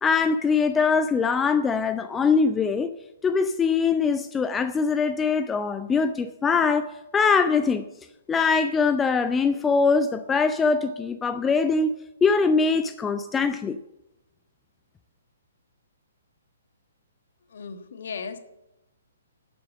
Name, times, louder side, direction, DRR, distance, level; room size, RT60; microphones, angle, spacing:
voice 1, 0.0-2.9 3.2-7.8 8.3-11.9 12.2-13.8, left 5 dB, 10° left, 11 dB, 0.5 m, -22 dB
voice 2, 17.5-18.4, left 5 dB, 55° left, 9 dB, 1.3 m, -36 dB
12.0 x 8.3 x 7.5 m, 0.93 s
figure-of-eight pair, 125°, 0 cm